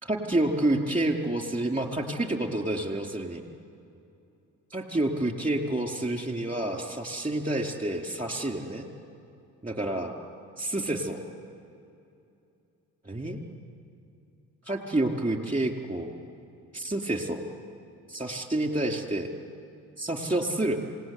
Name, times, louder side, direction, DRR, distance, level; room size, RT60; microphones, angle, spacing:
voice 1, 0.0-3.4 4.7-8.9 9.6-10.1 10.6-11.2 13.0-13.4 14.7-16.1 16.7-17.4 18.1-19.3 20.0-20.8, right 1 dB, 20° right, 3 dB, 4.7 m, -29 dB
26.5 x 19.0 x 9.9 m, 2.6 s
supercardioid pair, 65°, 37 cm